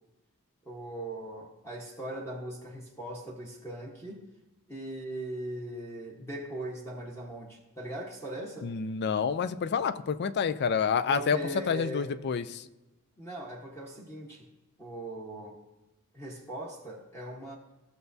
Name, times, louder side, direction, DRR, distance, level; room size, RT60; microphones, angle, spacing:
voice 1, 0.6-4.3 4.7-8.7 11.1-12.1 13.2-14.5 14.8-15.6 16.1-17.5, right 1 dB, 10° left, -2 dB, 1.1 m, -39 dB
voice 2, 8.6-11.4 11.7-12.6, left 6 dB, 50° left, 13 dB, 0.4 m, -28 dB
14.5 x 6.8 x 2.7 m, 1.0 s
head